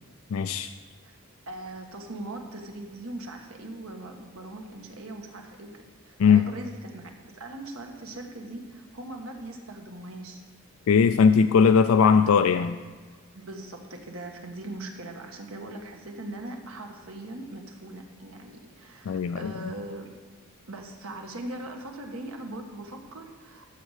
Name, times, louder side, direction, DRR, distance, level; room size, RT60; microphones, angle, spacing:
voice 1, 0.3-0.7 6.2-6.4 10.9-12.7 19.1-19.5, left 6 dB, 75° left, 9 dB, 0.4 m, -19 dB
voice 2, 1.5-10.4 11.8-12.2 13.3-20.1 20.7-23.7, right 2 dB, 80° right, 3 dB, 1.4 m, -40 dB
14.0 x 6.5 x 4.9 m, 1.4 s
head